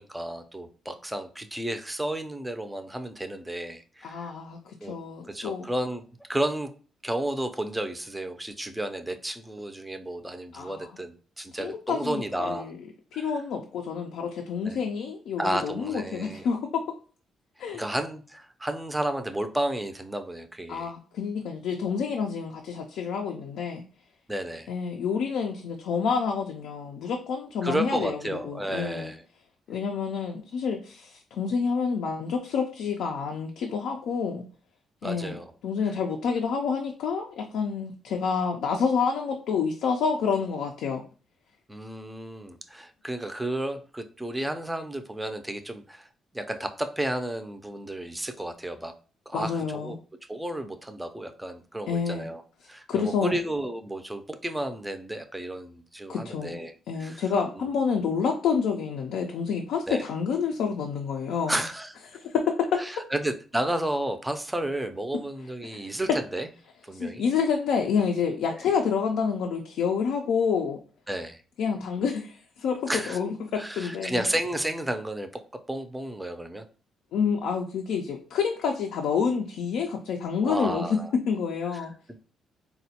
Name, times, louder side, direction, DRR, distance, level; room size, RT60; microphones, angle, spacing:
voice 1, 0.0-4.3 4.8-5.0 5.3-6.0 6.3-6.7 7.0-12.7 13.1-13.3 14.7-14.8 15.4-16.5 17.7-20.9 24.3-24.7 27.6-29.2 35.0-35.5 41.7-46.1 46.3-48.9 49.3-50.0 50.3-52.4 52.7-57.2 57.6-57.7 59.9-60.0 61.5-62.0 62.8-66.5 66.8-67.2 68.5-68.6 71.1-71.4 72.9-73.2 73.5-75.3 75.7-76.7 80.4-81.1 81.7-81.8, right 1 dB, 10° right, 8 dB, 0.4 m, -32 dB
voice 2, 4.0-5.7 10.5-10.9 11.5-12.8 13.1-16.8 17.6-17.8 20.7-23.8 24.7-28.2 28.4-29.1 29.7-34.4 35.0-41.0 49.3-49.9 51.9-52.3 52.9-53.4 56.1-56.6 56.9-61.6 62.1-62.8 65.6-65.9 66.9-70.8 71.6-74.3 77.1-80.9 81.3-81.9, left 6 dB, 80° left, 2 dB, 0.4 m, -28 dB
3.9 x 2.1 x 2.8 m, 0.39 s
cardioid pair, 90°, 0 cm